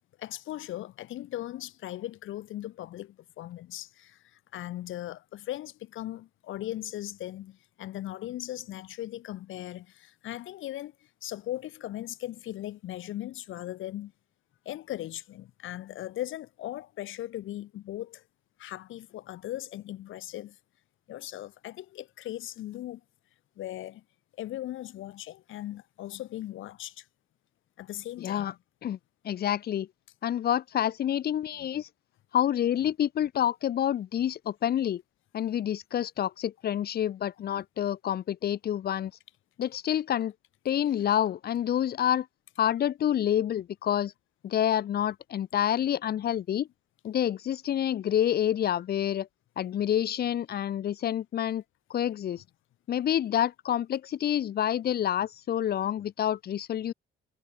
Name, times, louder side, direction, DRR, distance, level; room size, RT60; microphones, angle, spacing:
voice 1, 0.2-10.9 11.2-14.1 14.7-18.2 18.6-20.6 21.1-23.0 23.6-24.0 24.4-27.1 27.8-28.6, left 14 dB, 80° left, 2.0 m, -38 dB
voice 2, 28.2-28.5 28.8-29.0 29.2-29.9 30.2-31.9 32.3-35.0 35.3-39.1 39.6-40.3 40.6-42.3 42.6-44.1 44.4-46.7 47.0-49.3 49.6-51.6 51.9-52.4 52.9-56.9, left 10 dB, 50° left, 0.6 m, -28 dB
cardioid pair, 90°, 20 cm